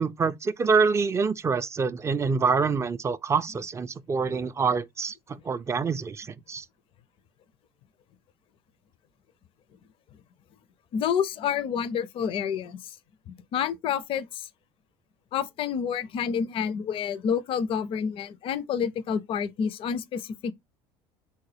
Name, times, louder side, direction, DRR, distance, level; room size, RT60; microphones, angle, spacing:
voice 1, 0.0-5.1 5.5-6.6, right 5 dB, 25° right, 0.3 m, -26 dB
voice 2, 10.9-13.0 13.3-14.5 15.3-20.5, left 7 dB, 50° left, 0.4 m, -29 dB
3.8 x 2.1 x 3.2 m
supercardioid pair, 90°, 12 cm